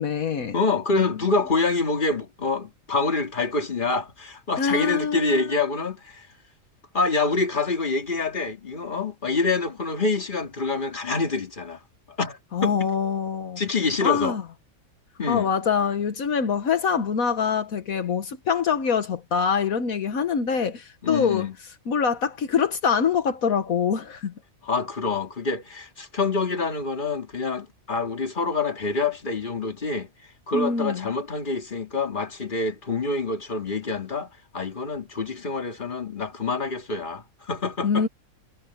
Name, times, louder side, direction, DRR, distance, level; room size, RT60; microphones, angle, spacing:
voice 1, 0.0-0.6 0.9-1.0 4.6-5.5 12.5-13.6 14.0-14.4 15.3-21.5 21.9-24.3 30.5-31.1 37.8-38.1, left 6 dB, 75° left, 1.6 m, -24 dB
voice 2, 0.5-6.3 6.9-11.8 12.2-12.9 13.6-14.4 15.2-15.5 21.0-21.5 24.6-30.1 30.5-38.1, left 3 dB, 35° left, 2.3 m, -26 dB
omnidirectional pair, 1.5 m